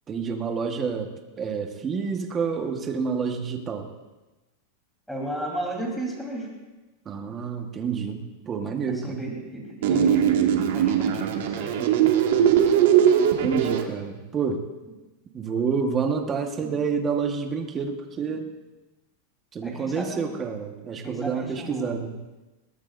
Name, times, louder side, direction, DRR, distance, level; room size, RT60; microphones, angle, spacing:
voice 1, 0.1-3.9 7.0-8.2 8.4-9.2 13.4-14.6 15.3-18.5 19.5-22.2, right 5 dB, 20° right, 3 dB, 1.3 m, -28 dB
voice 2, 5.1-6.5 8.8-12.1 18.3-18.4 19.6-20.4 21.0-22.0, right 1 dB, ahead, -2 dB, 3.5 m, -34 dB
sound 1, 9.8-13.8, right 9 dB, 70° right, 1.8 m, -20 dB
21.5 x 18.0 x 2.6 m, 1.1 s
supercardioid pair, 160°, 0 cm